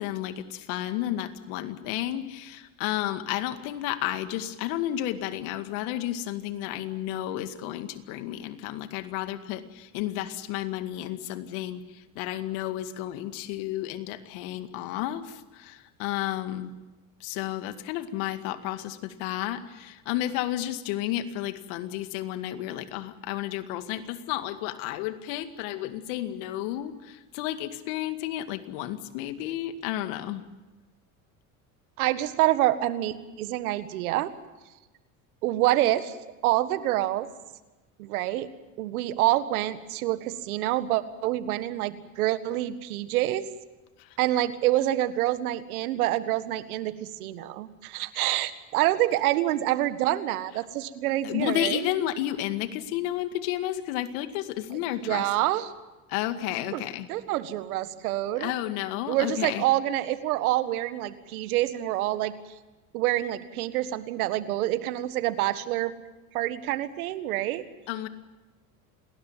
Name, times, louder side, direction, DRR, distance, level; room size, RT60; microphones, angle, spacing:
voice 1, 0.0-16.7 17.2-30.4 44.0-44.2 51.2-55.3 56.1-57.1 58.4-59.6 67.9-68.1, left 13 dB, 70° left, 10 dB, 2.2 m, -32 dB
voice 2, 32.0-34.3 35.4-36.2 36.4-37.3 38.0-38.5 38.8-43.5 44.2-51.9 55.0-55.7 56.7-56.8 57.1-58.5 59.1-62.4 62.9-65.9 66.3-67.6, right 15 dB, 80° right, 13 dB, 1.7 m, -27 dB
28.0 x 20.0 x 7.4 m, 1.1 s
hypercardioid pair, 80°, 43 cm